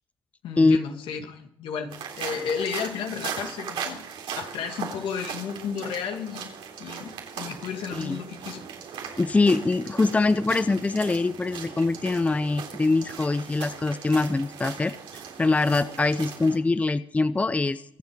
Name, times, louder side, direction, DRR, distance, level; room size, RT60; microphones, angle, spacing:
voice 1, 0.4-4.0 4.4-6.5 6.8-8.7, left 7 dB, 80° left, 4 dB, 2.3 m, -33 dB
sound 1, 1.9-16.6, right 7 dB, 90° right, 3.6 m, -38 dB
voice 2, 9.2-14.9 15.4-17.8, left 3 dB, 15° left, 14 dB, 0.6 m, -23 dB
23.5 x 8.1 x 5.1 m, 0.71 s
cardioid pair, 110°, 9 cm